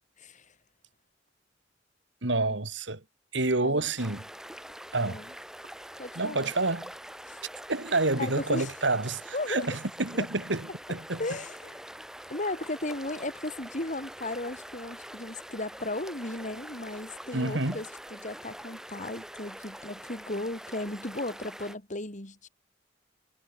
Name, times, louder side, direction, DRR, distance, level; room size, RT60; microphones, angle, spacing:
voice 1, 0.2-0.5 2.3-2.6 3.6-3.9 4.9-5.3 6.0-6.5 7.3-7.4 8.2-8.7 9.3-9.6 10.1-10.3 11.2-11.8 12.3-17.9 18.1-22.5, left 2 dB, 40° left, 3.6 m, -36 dB
voice 2, 2.2-3.0 3.3-4.2 4.9-5.2 6.1-6.9 7.7-11.2 17.3-17.8, right 2 dB, 75° right, 2.8 m, -28 dB
sound 1, 4.0-21.8, equal, 5° right, 1.6 m, -44 dB
head